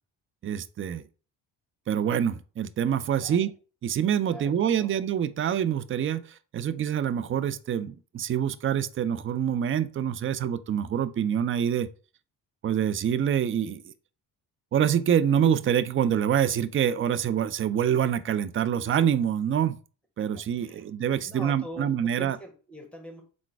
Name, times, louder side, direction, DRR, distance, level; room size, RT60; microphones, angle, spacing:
voice 1, 0.4-1.0 1.9-3.5 3.8-11.9 12.6-13.9 14.7-19.8 20.2-22.4, right 9 dB, 30° right, 0.4 m, -26 dB
voice 2, 3.2-3.5 4.3-5.1 20.3-20.9 21.2-23.2, right 1 dB, ahead, 1.4 m, -44 dB
3.7 x 2.5 x 4.6 m
hypercardioid pair, 50°, 49 cm